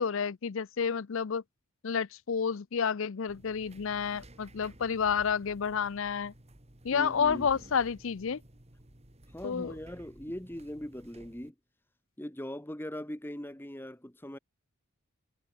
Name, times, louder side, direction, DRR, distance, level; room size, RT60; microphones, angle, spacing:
voice 1, 0.0-1.4 1.8-6.3 6.8-8.4 9.4-9.7, left 6 dB, 60° left, 0.5 m, -30 dB
sound 1, 3.3-11.5, right 1 dB, 30° right, 2.2 m, -54 dB
voice 2, 6.9-7.5 9.3-11.5 12.2-14.4, equal, 10° left, 1.5 m, -40 dB
head